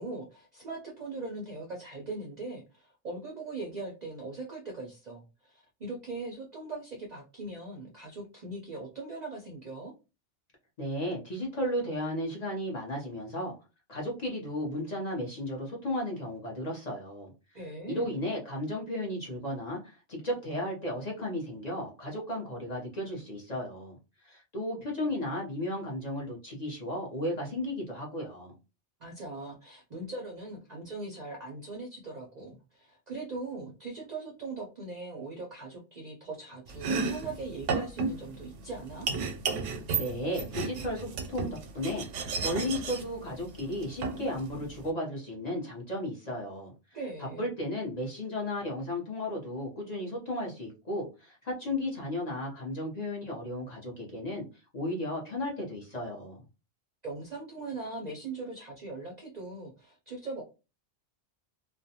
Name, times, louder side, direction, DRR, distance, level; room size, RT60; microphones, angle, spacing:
voice 1, 0.0-9.9 17.5-18.1 29.0-39.1 46.9-47.5 57.0-60.4, right 3 dB, 55° right, -1 dB, 0.5 m, -40 dB
voice 2, 10.8-13.5 13.9-17.3 17.9-24.0 24.2-28.6 40.0-42.1 42.4-46.7 47.2-54.5 54.7-56.4, left 1 dB, 40° left, -2 dB, 0.7 m, -34 dB
Domestic sounds home sounds, 36.7-44.9, right 4 dB, 90° right, 0.9 m, -34 dB
2.4 x 2.1 x 2.7 m, 0.29 s
omnidirectional pair, 1.2 m